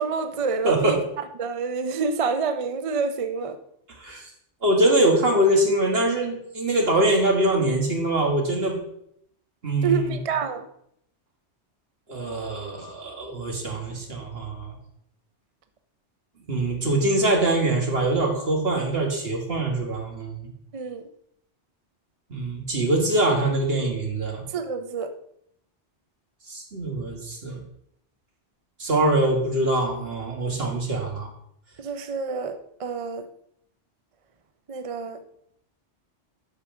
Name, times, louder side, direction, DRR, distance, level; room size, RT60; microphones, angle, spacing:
voice 1, 0.0-3.6 9.8-10.7 20.7-21.0 24.5-25.1 31.8-33.3 34.7-35.2, right 5 dB, 45° right, 8 dB, 0.5 m, -28 dB
voice 2, 0.6-1.0 4.0-4.3 4.6-8.8 9.6-10.2 12.1-14.7 16.5-20.5 22.3-24.4 26.5-27.6 28.8-31.3, right 1 dB, 60° right, 1 dB, 2.0 m, -23 dB
8.6 x 4.8 x 6.0 m, 0.72 s
omnidirectional pair, 1.2 m